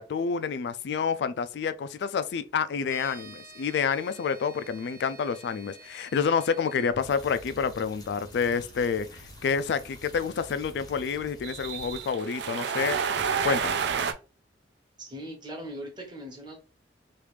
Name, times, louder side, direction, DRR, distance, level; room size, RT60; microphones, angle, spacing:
voice 1, 0.0-13.0 13.4-13.8, left 6 dB, 65° left, 0.3 m, -28 dB
sound 1, 2.8-6.9, right 3 dB, 50° right, 0.8 m, -49 dB
sound 2, 6.9-14.1, right 6 dB, 70° right, 0.4 m, -31 dB
sound 3, 7.0-12.1, left 2 dB, 20° left, 0.6 m, -50 dB
voice 2, 15.0-16.6, equal, 25° right, 1.0 m, -40 dB
3.1 x 2.4 x 3.2 m
head